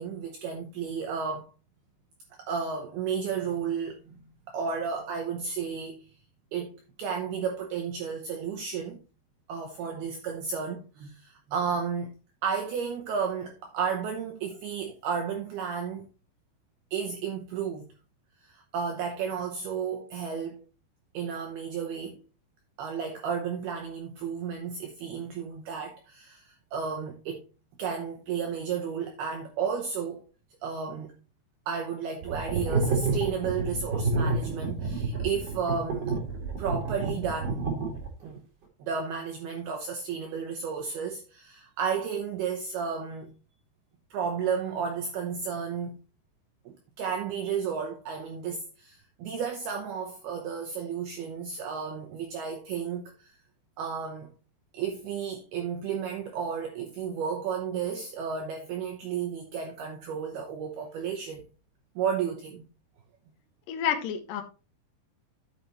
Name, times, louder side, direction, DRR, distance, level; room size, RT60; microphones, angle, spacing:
voice 1, 0.0-1.5 2.4-6.1 6.5-9.0 9.5-12.1 12.4-16.1 16.9-17.8 18.4-20.6 21.1-22.2 22.8-27.5 27.8-30.2 30.6-31.1 31.7-36.1 36.6-37.6 38.2-38.4 38.8-43.3 44.1-46.0 46.7-53.3 53.8-54.3 54.7-61.4 62.0-62.6, right 6 dB, 75° right, 2.4 m, -33 dB
sound 1, 32.2-38.3, right 3 dB, 45° right, 2.4 m, -29 dB
voice 2, 63.7-64.4, left 9 dB, 75° left, 2.0 m, -29 dB
11.0 x 7.0 x 3.0 m
omnidirectional pair, 5.7 m